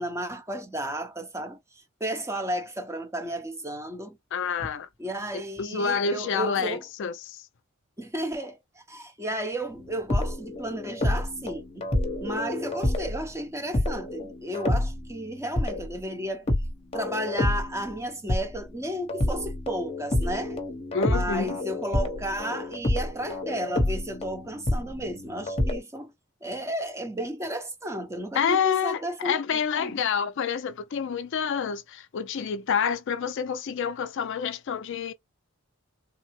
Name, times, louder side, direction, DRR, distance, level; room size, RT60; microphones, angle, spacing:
voice 1, 0.0-4.2 4.6-4.7 5.0-6.8 8.0-11.9 12.2-16.5 16.9-20.6 21.0-26.1 26.4-29.9, right 1 dB, 15° right, 0.8 m, -33 dB
voice 2, 4.3-4.9 5.3-7.4 20.9-21.6 28.3-35.1, left 6 dB, 60° left, 0.4 m, -28 dB
sound 1, 9.7-13.3 13.7-18.7 19.1-25.8, left 1 dB, 30° left, 0.8 m, -29 dB
3.5 x 2.0 x 3.0 m
head